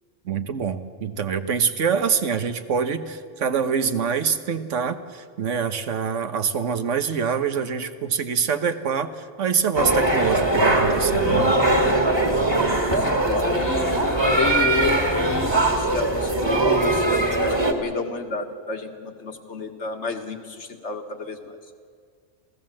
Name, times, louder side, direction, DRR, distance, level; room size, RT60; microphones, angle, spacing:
voice 1, 0.2-11.6, right 6 dB, 80° right, 9 dB, 1.4 m, -25 dB
sound 1, 9.8-17.7, right 2 dB, 20° right, 1.9 m, -21 dB
voice 2, 12.6-21.6, left 4 dB, 65° left, 5 dB, 1.9 m, -31 dB
27.5 x 16.5 x 7.6 m, 2.1 s
omnidirectional pair, 1.2 m